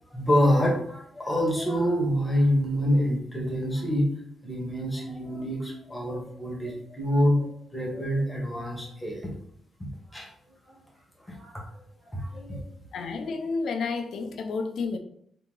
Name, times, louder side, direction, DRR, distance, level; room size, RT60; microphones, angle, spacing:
voice 1, 0.1-4.1 4.4-9.3 10.1-10.3 10.7-10.8 11.3-11.6 12.0-12.6, equal, 10° left, -2 dB, 1.2 m, -26 dB
voice 2, 12.9-15.0, left 4 dB, 70° left, 6 dB, 0.5 m, -30 dB
3.8 x 2.8 x 3.7 m, 0.69 s
cardioid pair, 115°, 0 cm